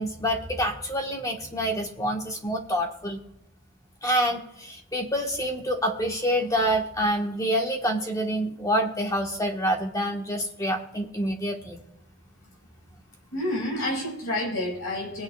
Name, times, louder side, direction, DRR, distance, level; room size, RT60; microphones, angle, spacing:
voice 1, 0.0-3.2 4.0-11.8, equal, 15° left, 2 dB, 1.4 m, -27 dB
voice 2, 13.3-15.2, left 1 dB, 75° left, 0 dB, 4.8 m, -29 dB
22.0 x 8.8 x 2.4 m, 0.84 s
head